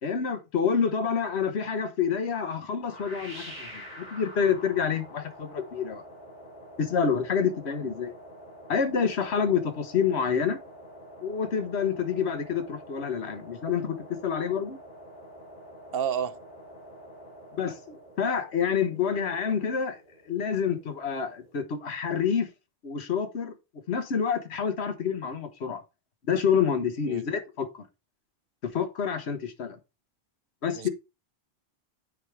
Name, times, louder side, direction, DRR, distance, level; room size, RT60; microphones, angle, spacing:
voice 1, 0.0-6.0 6.8-8.1 8.7-10.6 11.2-14.0 14.2-14.8 17.6-20.0 20.3-22.5 22.8-23.5 23.9-25.8 26.3-27.8 28.6-29.8 30.6-30.9, left 6 dB, 80° left, 1.3 m, -28 dB
sound 1, 2.8-21.6, equal, 45° left, 5.1 m, -47 dB
voice 2, 15.9-16.4 27.1-27.2 30.7-30.9, right 8 dB, 65° right, 0.9 m, -30 dB
9.5 x 3.5 x 4.6 m
omnidirectional pair, 1.1 m